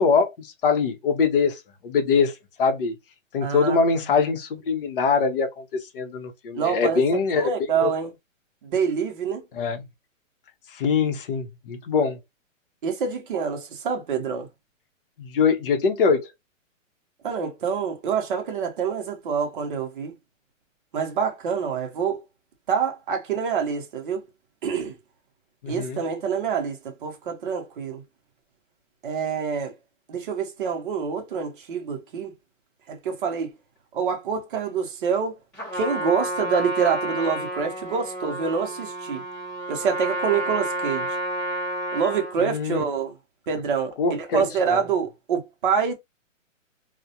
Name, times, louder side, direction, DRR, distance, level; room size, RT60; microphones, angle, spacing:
voice 1, 0.0-3.0 3.3-7.5 7.8-7.9 9.5-9.8 10.7-12.2 15.2-16.3 25.6-26.0 42.4-42.8 44.0-44.8, left 5 dB, 45° left, 0.7 m, -23 dB
voice 2, 3.4-3.8 6.5-7.0 7.4-8.1 8.6-9.4 12.8-14.5 17.2-20.1 20.9-22.2 22.7-24.2 24.6-25.0 25.7-28.0 29.0-29.7 30.1-32.3 32.9-33.5 33.9-35.4 35.7-39.2 39.7-41.1 41.9-43.1 43.5-45.9, right 6 dB, 40° right, 0.7 m, -26 dB
Trumpet, 35.5-42.4, right 1 dB, ahead, 0.7 m, -30 dB
2.3 x 2.1 x 2.7 m
hypercardioid pair, 165°, 39 cm